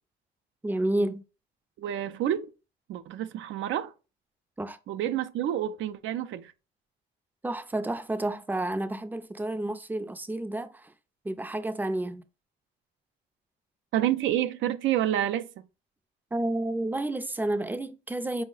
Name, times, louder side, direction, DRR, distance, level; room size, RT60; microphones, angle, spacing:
voice 1, 0.6-1.2 4.6-4.8 7.4-10.9 11.2-12.2 16.3-18.4, right 1 dB, 10° right, 0.4 m, -30 dB
voice 2, 1.8-2.5 2.9-3.9 4.9-6.5 13.9-15.5, right 11 dB, 75° right, 0.4 m, -28 dB
4.6 x 2.1 x 3.8 m
cardioid pair, 90°, 20 cm